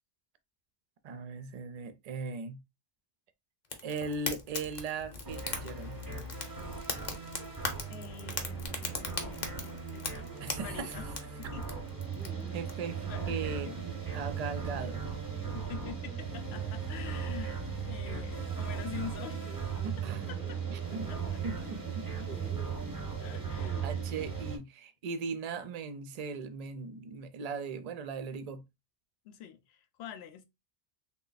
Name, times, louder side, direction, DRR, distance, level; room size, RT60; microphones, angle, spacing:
voice 1, 1.0-2.6 3.8-6.0 10.4-11.0 12.5-13.7 14.1-15.0 19.8-20.3 20.7-21.1 21.4-22.3 23.8-28.6, right 4 dB, 50° right, 0.5 m, -38 dB
Fire, 3.6-12.7, left 4 dB, 50° left, 0.8 m, -40 dB
sound 1, 5.2-24.6, right 6 dB, 20° right, 0.8 m, -37 dB
sound 2, 7.7-23.5, right 1 dB, 10° left, 0.5 m, -53 dB
voice 2, 7.9-10.3 10.6-11.1 11.4-11.7 13.1-13.8 15.3-19.8 20.3-20.4 21.1-21.2 23.2-24.0 29.2-30.4, left 9 dB, 85° left, 0.9 m, -46 dB
3.2 x 2.2 x 3.9 m
omnidirectional pair, 1.0 m